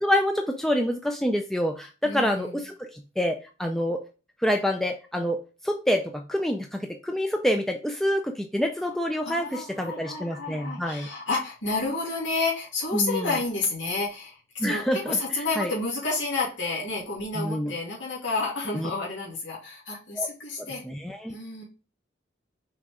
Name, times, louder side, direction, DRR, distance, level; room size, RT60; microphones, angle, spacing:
voice 1, 0.0-4.0 4.4-5.4 5.6-11.1 12.9-13.4 14.6-15.7 17.4-17.7 18.7-18.9 20.2-20.3 20.8-21.4, equal, ahead, 3 dB, 0.4 m, -27 dB
voice 2, 2.0-2.6 9.2-20.8 21.3-21.6, left 3 dB, 75° left, -5 dB, 2.7 m, -30 dB
6.0 x 4.2 x 3.7 m, 0.34 s
head